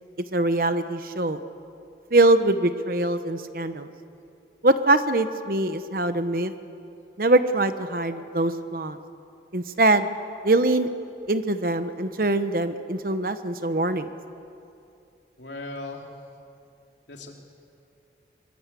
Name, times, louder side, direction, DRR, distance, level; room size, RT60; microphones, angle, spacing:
voice 1, 0.3-1.4 2.1-3.9 4.6-6.5 7.2-9.0 9.5-10.1 10.4-10.9 11.3-14.1, right 2 dB, 50° right, 10 dB, 1.0 m, -23 dB
voice 2, 15.4-16.1 17.1-17.3, left 2 dB, 90° left, 1 dB, 3.3 m, -37 dB
24.0 x 22.0 x 8.4 m, 2.6 s
head